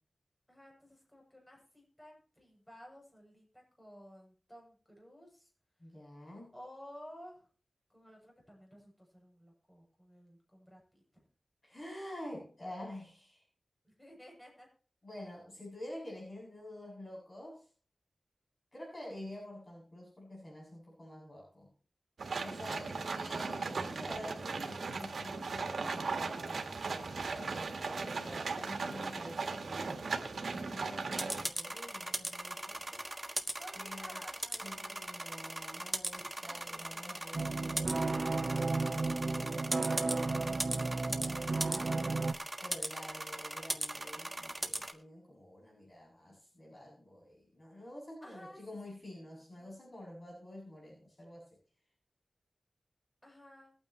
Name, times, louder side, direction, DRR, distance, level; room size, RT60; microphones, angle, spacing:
voice 1, 0.5-5.5 6.5-7.5 7.9-11.2 13.8-14.7 32.8-35.6 36.2-37.4 48.2-48.6 48.9-49.0 49.5-49.7 53.2-53.7, equal, 15° left, -1 dB, 8.0 m, -55 dB
voice 2, 5.8-6.5 11.6-13.4 15.0-17.6 18.7-21.7 22.4-33.1 33.7-34.2 34.6-42.3 42.6-51.5, left 1 dB, 35° left, -4 dB, 7.4 m, -48 dB
sound 1, 22.2-31.4, right 4 dB, 85° right, 1.8 m, -37 dB
sound 2, 31.2-44.9, right 1 dB, 15° right, 1.4 m, -39 dB
sound 3, 37.3-42.3, right 3 dB, 50° right, 0.7 m, -33 dB
22.0 x 9.2 x 3.1 m, 0.40 s
wide cardioid pair, 75°, 0 cm